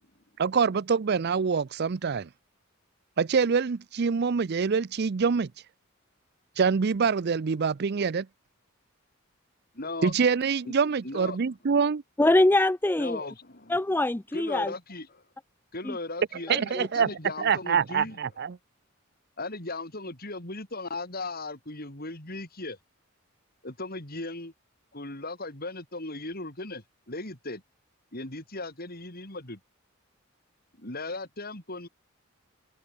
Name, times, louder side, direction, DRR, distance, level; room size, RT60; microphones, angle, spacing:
voice 1, 0.4-2.3 3.2-5.5 6.6-8.2 10.0-12.0 16.5-17.1 17.4-18.6, right 5 dB, 50° right, 0.5 m, -25 dB
voice 2, 9.7-10.1 11.0-11.4 13.0-13.7 14.3-15.2 15.7-18.2 19.4-22.8 23.6-24.5 24.9-27.6 28.1-29.6 30.8-31.9, left 2 dB, 45° left, 5.9 m, -37 dB
voice 3, 12.2-13.2 13.7-14.7 15.8-16.0 16.5-16.9, left 1 dB, 10° left, 0.4 m, -24 dB
head